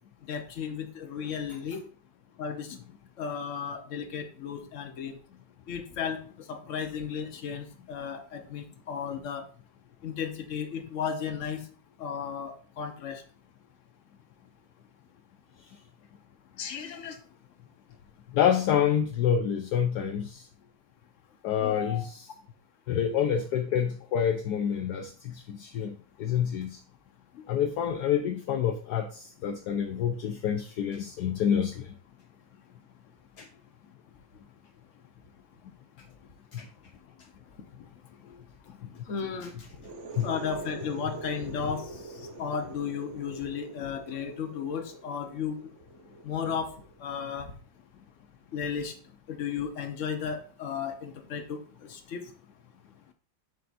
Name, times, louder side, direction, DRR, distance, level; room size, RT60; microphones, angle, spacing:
voice 1, 0.3-1.8 2.4-2.8 3.2-5.2 5.7-6.2 6.5-9.4 10.0-11.6 12.0-13.2 16.6-17.2 21.6-22.0 27.3-27.5 39.1-39.5 40.2-45.7 46.2-46.7 47.0-47.5 48.5-48.9 49.3-52.2, left 7 dB, 45° left, 5 dB, 1.1 m, -34 dB
voice 2, 18.3-20.5 21.4-22.2 22.9-26.8 27.5-31.9 33.4-33.5 36.5-36.7 38.8-39.0 39.4-39.7 40.1-40.3, left 8 dB, 70° left, 7 dB, 1.0 m, -28 dB
sound 1, 39.7-47.2, right 3 dB, 60° right, 0.7 m, -45 dB
7.6 x 6.8 x 2.6 m, 0.43 s
omnidirectional pair, 2.2 m